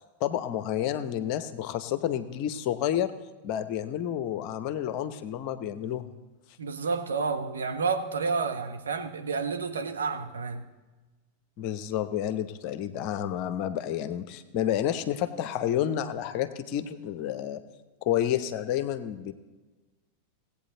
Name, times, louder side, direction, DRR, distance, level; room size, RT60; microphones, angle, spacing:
voice 1, 0.2-3.1 3.4-6.1 11.6-17.6 18.0-19.3, left 11 dB, 45° left, 12 dB, 0.8 m, -30 dB
voice 2, 6.6-10.6, right 4 dB, 70° right, 6 dB, 1.0 m, -30 dB
17.0 x 8.6 x 3.8 m, 1.2 s
figure-of-eight pair, 90°, 0 cm